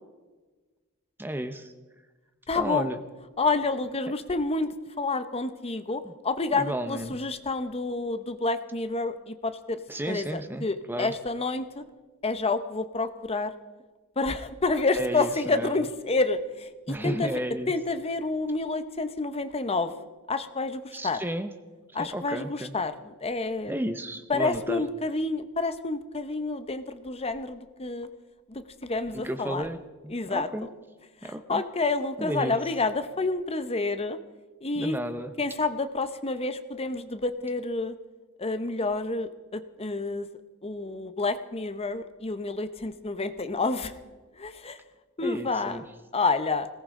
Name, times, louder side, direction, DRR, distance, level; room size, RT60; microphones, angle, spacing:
voice 1, 1.2-1.7 2.5-3.0 6.0-6.1 6.5-7.2 9.9-11.1 15.0-15.7 16.9-17.7 20.9-21.5 22.0-22.7 23.7-24.8 29.1-29.8 30.0-30.7 31.2-31.6 32.2-32.6 34.8-35.3 45.2-45.8, right 1 dB, 10° right, 9 dB, 0.6 m, -33 dB
voice 2, 2.5-2.9 3.4-9.8 10.1-11.8 12.2-13.5 14.2-17.3 17.7-19.9 20.3-21.2 21.9-23.7 24.3-28.1 28.5-29.7 30.1-30.7 31.2-34.2 34.6-35.0 35.4-37.9 38.4-40.3 40.6-43.9 44.4-44.8 45.2-45.8 46.1-46.7, left 3 dB, 25° left, 10 dB, 0.8 m, -29 dB
20.5 x 18.0 x 3.8 m, 1.3 s
head